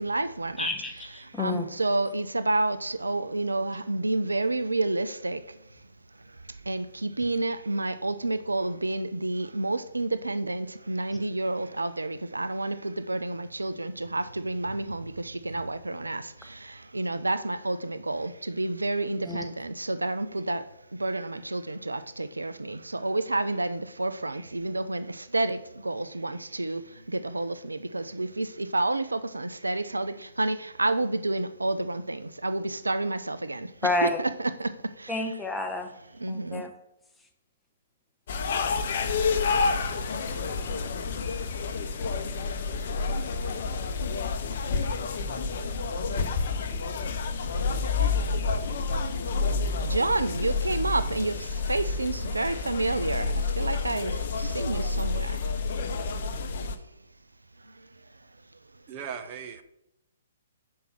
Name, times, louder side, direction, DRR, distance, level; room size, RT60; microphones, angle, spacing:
voice 1, 0.0-0.7 1.4-5.6 6.3-6.4 6.6-20.7 21.0-33.7 34.0-34.1 34.4-35.1 36.2-36.7 49.8-55.4 57.7-57.9, right 2 dB, 80° right, 12 dB, 0.4 m, -30 dB
voice 2, 0.6-1.7 19.2-19.4 33.8-34.2 35.1-35.9 36.3-36.7, left 2 dB, 5° left, 3 dB, 0.9 m, -29 dB
sound 1, 38.3-56.8, left 4 dB, 50° left, 0.7 m, -29 dB
voice 3, 58.9-59.6, right 7 dB, 35° right, 8 dB, 0.7 m, -37 dB
5.2 x 4.7 x 6.0 m, 0.83 s
figure-of-eight pair, 125°, 0 cm